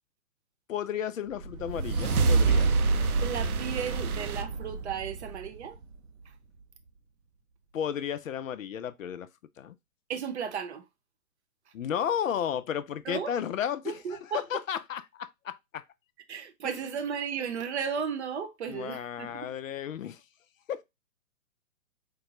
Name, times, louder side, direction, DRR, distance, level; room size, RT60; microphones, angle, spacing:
voice 1, 0.7-2.8 7.7-9.3 9.6-9.8 11.7-15.8 16.6-16.8 18.7-20.2 20.7-20.8, left 9 dB, 65° left, 0.5 m, -33 dB
sound 1, 1.4-5.9, right 4 dB, 85° right, 0.6 m, -27 dB
voice 2, 3.2-5.8 10.1-10.8 13.1-13.3 13.8-14.4 16.3-19.5, right 7 dB, 50° right, 0.7 m, -34 dB
4.0 x 2.2 x 2.8 m
hypercardioid pair, 130°, 43 cm